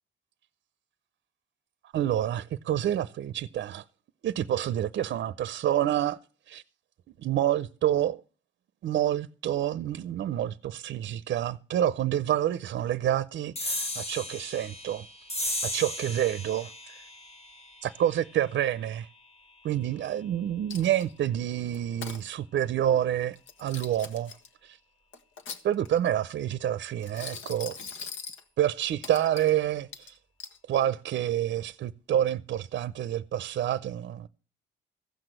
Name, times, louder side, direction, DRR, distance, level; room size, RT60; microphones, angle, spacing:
voice 1, 1.9-3.8 4.2-6.2 6.5-6.6 7.2-8.2 8.8-15.1 15.6-17.0 17.8-19.1 19.6-24.3 24.6-24.8 25.6-27.9 28.6-30.2 30.7-34.3, right 11 dB, 65° right, 0.6 m, -28 dB
sound 1, 13.5-20.4, left 1 dB, 30° left, 1.7 m, -37 dB
Coin (dropping), 20.7-21.3 21.7-22.2 23.4-24.5 25.1-26.1 27.0-28.4 29.0-29.5 29.9-30.6, left 5 dB, 75° left, 1.6 m, -41 dB
15.0 x 6.1 x 7.7 m
cardioid pair, 90°, 20 cm